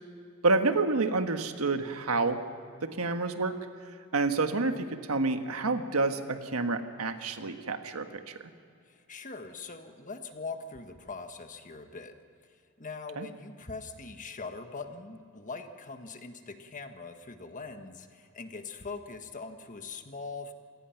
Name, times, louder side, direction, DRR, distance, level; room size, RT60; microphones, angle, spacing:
voice 1, 0.4-2.4 2.8-3.5 4.1-8.4 13.2-13.3, right 3 dB, 90° right, 7 dB, 1.4 m, -28 dB
voice 2, 8.9-12.2 12.8-20.5, left 4 dB, 35° left, 7 dB, 1.5 m, -42 dB
27.5 x 18.0 x 5.9 m, 2.4 s
head